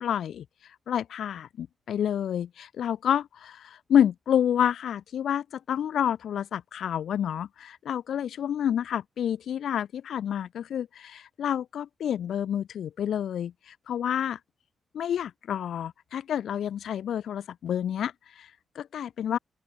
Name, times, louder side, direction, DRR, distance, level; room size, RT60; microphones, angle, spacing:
voice 1, 0.0-14.4 14.9-19.4, left 9 dB, 80° left, 3.4 m, -29 dB
open air
cardioid pair, 60°, 0 cm